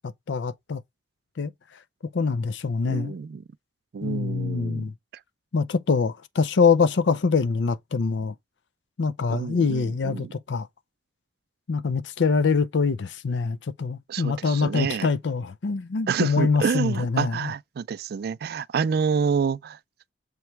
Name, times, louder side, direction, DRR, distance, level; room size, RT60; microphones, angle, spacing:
voice 1, 0.3-0.8 1.4-1.5 2.1-3.1 4.0-4.9 5.5-8.3 9.0-10.7 11.7-17.5, left 5 dB, 75° left, 0.5 m, -24 dB
voice 2, 2.9-3.4 3.9-4.8 9.3-10.3 14.1-15.1 16.1-19.8, right 6 dB, 60° right, 0.3 m, -28 dB
6.8 x 3.1 x 4.5 m
head